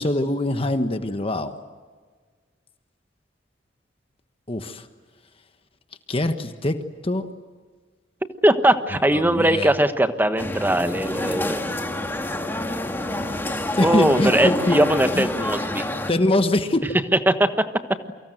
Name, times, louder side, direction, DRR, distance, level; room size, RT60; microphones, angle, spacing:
voice 1, 0.0-1.5 4.5-4.9 6.1-6.8 7.0-7.3 9.2-9.7 13.7-14.8 15.1-15.3 16.1-16.8, left 1 dB, 30° left, 8 dB, 1.3 m, -23 dB
voice 2, 8.4-11.6 13.8-15.9 17.1-17.7, right 1 dB, 10° right, 9 dB, 1.3 m, -20 dB
sound 1, 10.4-16.1, left 1 dB, 10° left, 2.1 m, -27 dB
28.5 x 24.5 x 7.9 m, 1.5 s
head